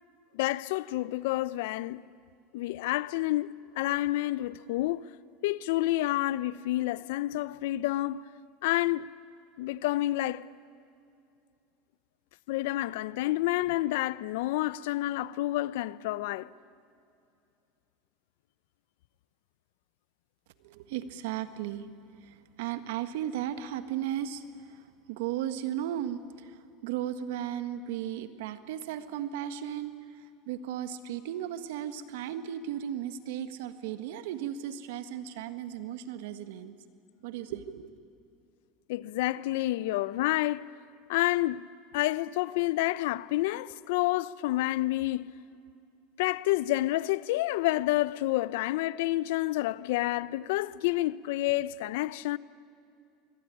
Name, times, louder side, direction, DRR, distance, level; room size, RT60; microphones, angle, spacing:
voice 1, 0.3-2.0 2.5-5.0 5.4-8.2 8.6-9.1 9.6-10.4 12.5-16.5 38.9-40.7 41.1-41.7 41.9-45.3 46.2-52.4, left 16 dB, 80° left, 0.7 m, -29 dB
voice 2, 20.6-21.9 22.1-36.7 37.2-37.9, right 10 dB, 80° right, 1.7 m, -36 dB
26.0 x 22.5 x 10.0 m
supercardioid pair, 130°, 0 cm